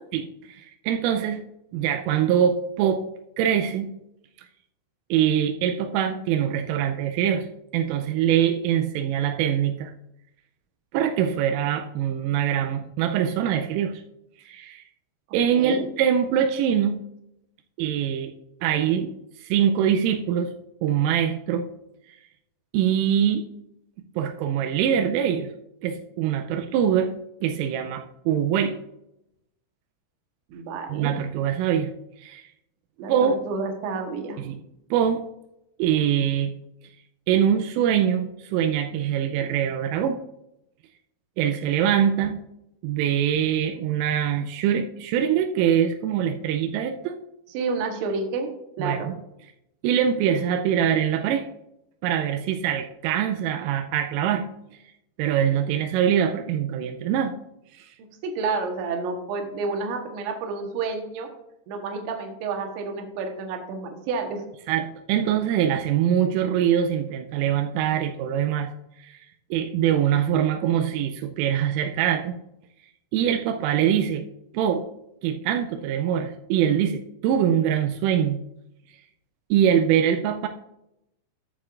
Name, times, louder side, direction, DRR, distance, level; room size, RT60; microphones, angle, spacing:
voice 1, 0.1-1.4 1.7-3.0 3.4-3.9 5.1-7.5 7.7-9.9 10.9-14.0 14.5-14.8 15.3-17.0 17.8-18.3 18.6-19.1 19.4-20.5 20.8-21.7 22.7-23.4 24.2-25.5 25.8-27.2 27.4-28.8 30.9-31.9 32.2-32.4 33.1-33.4 34.4-34.6 34.9-35.2 35.8-36.5 37.3-40.2 41.4-42.4 42.8-47.2 48.8-49.1 49.8-51.5 52.0-54.5 55.2-57.3 57.8-57.9 64.7-68.7 69.1-69.2 69.5-72.3 73.1-74.2 74.5-74.9 75.2-78.4 79.5-80.5, right 9 dB, 90° right, 5 dB, 3.2 m, -23 dB
voice 2, 15.5-15.9 30.5-31.1 33.0-34.4 47.5-49.1 58.2-61.3 61.7-64.4, right 4 dB, 70° right, 3 dB, 3.4 m, -30 dB
14.0 x 7.7 x 2.5 m, 0.82 s
omnidirectional pair, 5.7 m